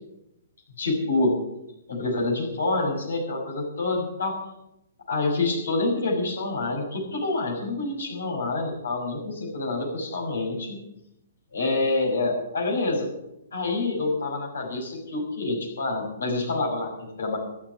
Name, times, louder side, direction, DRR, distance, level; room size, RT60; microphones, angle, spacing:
voice 1, 0.8-1.4 1.9-4.4 5.1-10.8 11.5-13.1 13.5-17.4, left 2 dB, 65° left, 0 dB, 6.0 m, -27 dB
13.5 x 10.5 x 9.1 m, 0.85 s
figure-of-eight pair, 120°, 0 cm